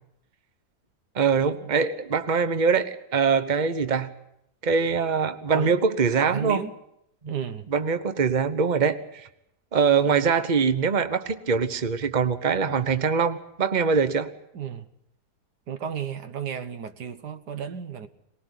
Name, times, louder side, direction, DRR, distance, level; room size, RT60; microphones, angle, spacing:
voice 1, 1.1-4.1 4.6-6.6 7.2-7.3 7.7-9.3 9.7-14.3, right 5 dB, 30° right, 1.1 m, -23 dB
voice 2, 6.2-6.7 7.3-7.7 10.1-10.2 14.5-14.9 15.7-18.1, right 8 dB, 90° right, 1.8 m, -33 dB
23.0 x 20.0 x 8.2 m
omnidirectional pair, 1.7 m